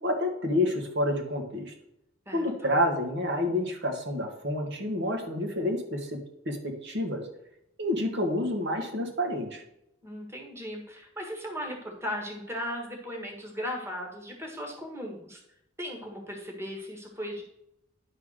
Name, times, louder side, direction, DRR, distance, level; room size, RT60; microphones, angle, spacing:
voice 1, 0.0-1.7 2.3-6.2 6.4-7.3 7.8-9.6, left 1 dB, 60° right, 2 dB, 1.6 m, -29 dB
voice 2, 2.3-2.7 10.0-15.4 15.8-17.4, equal, 15° right, 1 dB, 1.5 m, -37 dB
11.0 x 3.7 x 6.4 m, 0.80 s
head